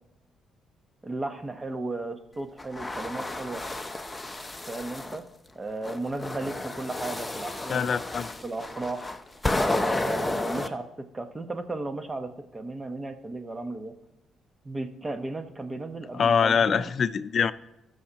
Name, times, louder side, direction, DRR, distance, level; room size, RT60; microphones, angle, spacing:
voice 1, 1.0-3.6 4.7-5.2 5.6-7.9 8.4-9.1 9.8-13.9 14.6-16.9, right 2 dB, 20° right, 1.0 m, -35 dB
sound 1, 2.6-5.2 5.8-10.7, left 2 dB, 15° left, 0.7 m, -31 dB
voice 2, 7.7-8.3 16.1-17.5, left 6 dB, 50° left, 0.4 m, -24 dB
19.0 x 6.4 x 2.9 m
cardioid pair, 90°, 0 cm